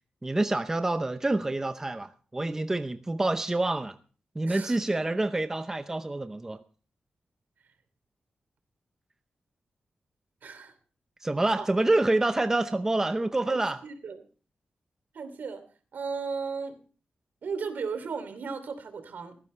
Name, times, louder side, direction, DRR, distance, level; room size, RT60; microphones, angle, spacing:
voice 1, 0.2-3.9 4.3-6.6 11.2-13.8, right 2 dB, 15° right, 9 dB, 0.7 m, -27 dB
voice 2, 4.5-4.8 10.4-10.7 11.6-11.7 13.5-14.2 15.1-15.6 15.9-16.8 17.4-19.3, right 5 dB, 75° right, 9 dB, 2.8 m, -35 dB
17.5 x 14.5 x 3.3 m, 0.39 s
wide cardioid pair, 160°, 3 cm